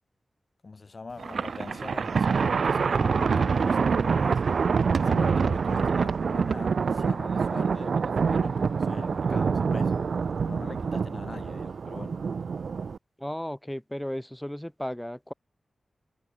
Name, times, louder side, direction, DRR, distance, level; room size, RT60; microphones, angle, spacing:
voice 1, 0.6-4.5 5.0-9.9 10.4-12.2, left 3 dB, 50° left, 1.8 m, -42 dB
Thunder, 1.2-13.0, right 5 dB, 75° right, 0.4 m, -26 dB
sound 1, 2.1-4.4, left 2 dB, 30° left, 7.6 m, -52 dB
voice 2, 13.2-15.3, equal, 5° left, 1.7 m, -34 dB
cardioid pair, 65°, 0 cm